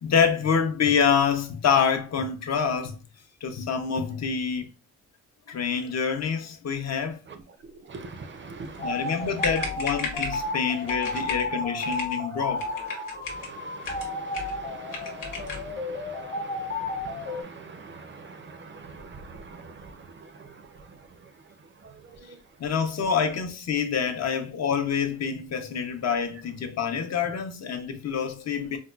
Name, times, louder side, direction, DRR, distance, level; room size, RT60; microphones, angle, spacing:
voice 1, 0.0-3.0 3.4-4.7 5.5-7.2 8.8-12.6 22.6-28.8, left 6 dB, 55° left, 0.5 m, -26 dB
voice 2, 7.3-9.7 10.3-22.7, right 4 dB, 40° right, 0.4 m, -45 dB
sound 1, 8.8-17.4, left 2 dB, 35° left, 1.0 m, -33 dB
sound 2, 9.4-10.4 10.9-11.5 11.8-12.2 12.6-13.5 13.8-14.6 14.9-15.7, left 4 dB, 90° left, 1.1 m, -34 dB
4.2 x 2.1 x 2.2 m
wide cardioid pair, 140°, 32 cm